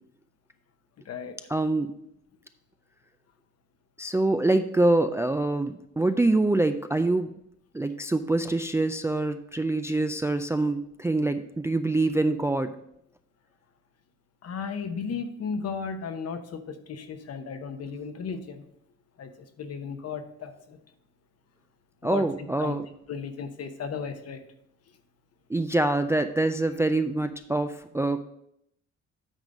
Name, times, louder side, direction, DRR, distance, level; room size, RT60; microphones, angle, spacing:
voice 1, 1.5-1.9 4.0-7.3 7.7-12.7 22.0-22.8 25.5-28.2, right 2 dB, 10° right, 8 dB, 0.3 m, -25 dB
voice 2, 14.4-16.6 16.9-18.6 19.2-19.3 19.6-20.8 22.0-22.3 22.6-22.8 23.1-24.4, left 6 dB, 55° left, 8 dB, 0.9 m, -34 dB
9.1 x 3.8 x 5.3 m, 0.76 s
cardioid pair, 90°, 30 cm